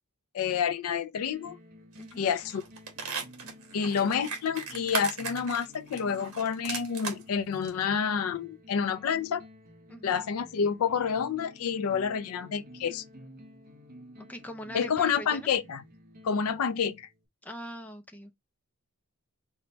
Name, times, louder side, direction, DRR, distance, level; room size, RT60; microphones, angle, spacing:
voice 1, 0.3-1.6 2.2-2.6 3.7-9.4 10.0-13.0 14.7-15.8 16.2-17.1, left 7 dB, 70° left, 0.4 m, -29 dB
sound 1, 1.3-17.3, equal, 40° right, 0.8 m, -52 dB
voice 2, 2.0-2.3 9.9-10.2 14.2-15.5 17.4-18.3, equal, 5° left, 0.4 m, -42 dB
sound 2, 2.0-2.2 2.5-7.2 7.6-7.7, right 5 dB, 75° right, 1.2 m, -37 dB
4.4 x 2.2 x 3.8 m
head